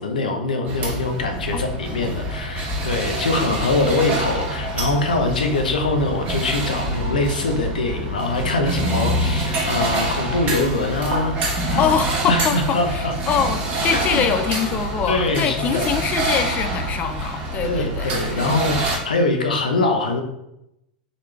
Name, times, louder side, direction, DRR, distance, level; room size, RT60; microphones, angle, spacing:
voice 1, 0.0-11.9 12.3-13.1 13.9-14.2 15.1-15.9 17.6-20.2, left 2 dB, 90° left, 4 dB, 0.6 m, -23 dB
sound 1, 0.7-19.0, right 1 dB, 40° right, 1.5 m, -26 dB
voice 2, 11.8-18.6, left 7 dB, 35° left, 9 dB, 0.4 m, -24 dB
4.0 x 3.2 x 3.1 m, 0.85 s
hypercardioid pair, 100°, 4 cm